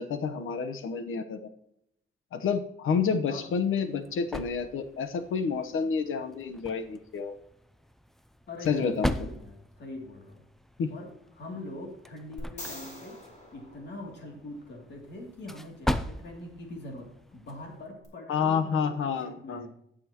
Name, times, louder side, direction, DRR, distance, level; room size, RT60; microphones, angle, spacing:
voice 1, 0.0-1.4 2.3-7.3 8.7-9.1 10.8-10.9 18.3-19.7, left 6 dB, 75° left, 9 dB, 1.1 m, -29 dB
sound 1, 3.4-17.9, equal, ahead, 0.4 m, -39 dB
voice 2, 8.5-10.4 10.9-13.2 13.5-19.7, left 2 dB, 55° left, 1 dB, 2.8 m, -43 dB
sound 2, 12.4-14.6 18.0-18.1, left 1 dB, 35° left, 3.1 m, -44 dB
18.0 x 6.3 x 3.0 m, 0.77 s
wide cardioid pair, 150°, 21 cm